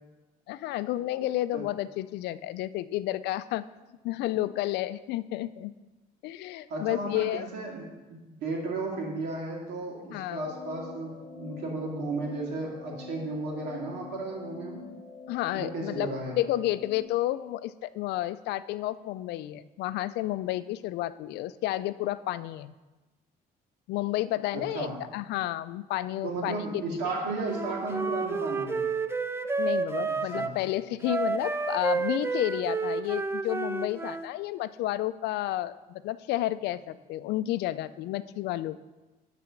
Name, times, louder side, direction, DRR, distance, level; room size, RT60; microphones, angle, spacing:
voice 1, 0.5-3.6 4.0-5.7 6.2-7.5 10.1-10.4 15.3-16.1 16.4-22.7 23.9-24.9 25.1-26.6 29.6-38.8, left 15 dB, 80° left, 15 dB, 0.4 m, -31 dB
voice 2, 6.7-14.9 15.5-16.4 24.5-25.0 26.2-28.9 30.0-30.5, right 2 dB, 80° right, -2 dB, 2.5 m, -34 dB
sound 1, 10.4-17.1, left 5 dB, 10° left, 1.1 m, -45 dB
Wind instrument woodwind instrument, 27.5-30.6 31.0-34.3, right 4 dB, 15° right, 0.4 m, -30 dB
11.5 x 4.1 x 5.9 m, 1.2 s
cardioid pair, 110°, 17 cm